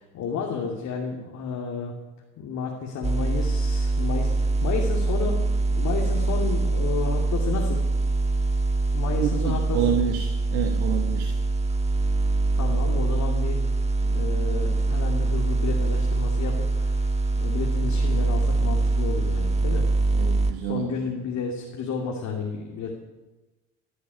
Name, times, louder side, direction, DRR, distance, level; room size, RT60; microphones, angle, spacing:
voice 1, 0.0-1.9 2.4-7.8 8.9-9.8 12.5-13.7 13.9-17.1 17.4-19.9 20.6-22.9, left 5 dB, 65° left, 0 dB, 2.7 m, -32 dB
sound 1, 3.0-20.5, right 3 dB, 20° right, 1.5 m, -24 dB
voice 2, 9.1-11.4 20.1-21.0, right 9 dB, 85° right, 6 dB, 1.3 m, -28 dB
16.0 x 8.6 x 9.2 m, 1.1 s
supercardioid pair, 70°, 30 cm